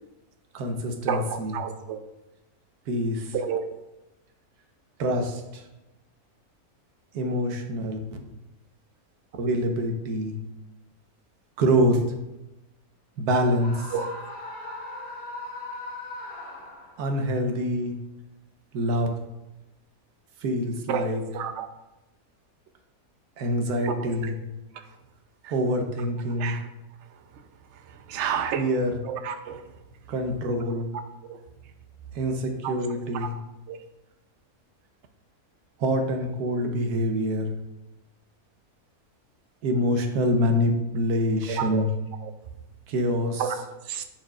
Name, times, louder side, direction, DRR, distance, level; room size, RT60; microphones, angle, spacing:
voice 1, 0.5-1.6 2.9-3.3 5.0-5.6 7.1-8.2 9.4-10.3 11.6-12.0 13.2-13.9 17.0-18.0 18.7-19.2 20.4-21.2 23.4-24.3 25.5-26.6 28.6-29.0 30.1-30.9 32.1-33.4 35.8-37.5 39.6-41.9 42.9-43.5, equal, 90° right, 4 dB, 1.4 m, -25 dB
voice 2, 1.1-2.0 3.3-3.6 13.9-14.1 20.9-21.7 23.8-24.3 25.4-25.5 26.3-26.7 28.1-28.8 29.0-29.6 31.3-31.4 32.6-33.3 33.7-33.8 41.5-41.9 42.2-42.3 43.4-43.5 43.9-44.0, right 7 dB, 65° right, 8 dB, 0.8 m, -30 dB
Screaming, 13.5-17.2, left 2 dB, 70° left, 1.6 m, -38 dB
10.0 x 4.3 x 2.4 m, 0.96 s
omnidirectional pair, 1.6 m